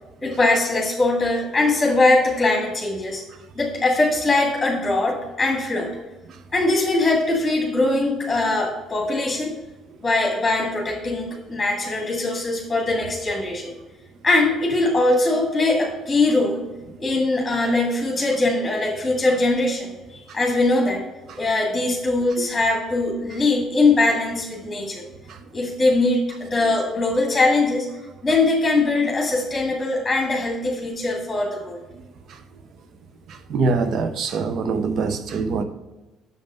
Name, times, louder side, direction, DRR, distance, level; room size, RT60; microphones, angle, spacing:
voice 1, 0.2-3.2 3.6-5.9 6.5-9.5 10.0-13.7 14.2-16.6 17.0-21.0 21.4-25.1 25.5-27.9 28.2-31.8, left 2 dB, 20° left, 2.1 m, -21 dB
voice 2, 33.5-35.6, right 4 dB, 60° right, 0.8 m, -23 dB
6.8 x 5.3 x 5.4 m
hypercardioid pair, 55°, 0 cm